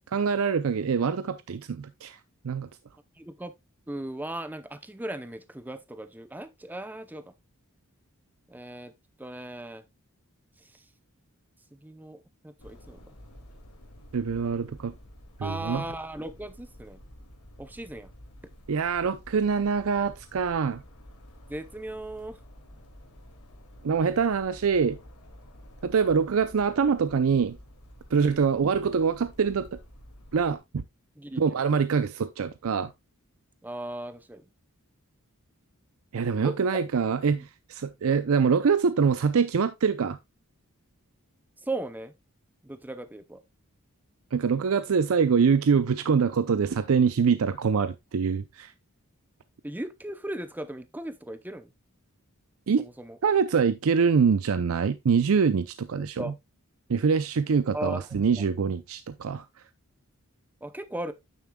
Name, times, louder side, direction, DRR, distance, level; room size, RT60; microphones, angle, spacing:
voice 1, 0.1-2.2 2.4-2.7 14.1-14.9 15.4-15.9 18.7-20.8 23.8-25.0 25.8-27.6 28.1-29.8 30.3-30.8 31.4-32.9 36.1-40.2 44.3-48.7 52.7-52.9 53.2-56.2 56.9-59.5, right 6 dB, 65° right, 0.5 m, -24 dB
voice 2, 3.2-3.5 3.9-7.3 8.5-8.9 9.2-9.8 10.7-10.8 11.7-13.0 15.4-17.0 17.6-18.1 21.5-22.4 28.1-28.5 31.2-31.4 33.6-34.4 36.4-36.5 37.4-37.5 41.6-42.1 42.6-43.4 49.6-51.7 52.8-53.2 56.0-56.3 57.7-58.0 58.4-58.5 60.6-61.1, right 1 dB, 10° right, 0.6 m, -37 dB
sound 1, 12.6-30.6, equal, 90° left, 2.3 m, -50 dB
9.4 x 6.9 x 2.2 m
head